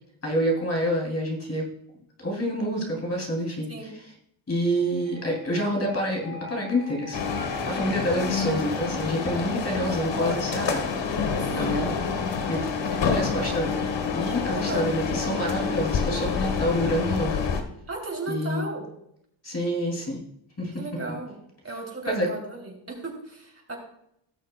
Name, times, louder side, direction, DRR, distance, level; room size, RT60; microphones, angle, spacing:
voice 1, 0.2-1.7 2.2-3.9 4.5-7.2 7.7-11.2 11.5-11.9 12.5-13.7 14.1-17.4 18.3-18.7 19.4-20.2 20.6-20.7 22.1-22.3, equal, 30° left, 0 dB, 2.8 m, -27 dB
sound 1, 4.7-9.7, left 6 dB, 75° left, 1.7 m, -45 dB
sound 2, 7.1-17.6, left 5 dB, 60° left, 1.4 m, -28 dB
voice 2, 11.4-11.7 14.5-14.9 17.9-18.8 20.7-21.3 21.6-23.8, right 3 dB, 30° right, 0 dB, 3.3 m, -35 dB
18.0 x 6.5 x 2.3 m, 0.74 s
cardioid pair, 80°, 49 cm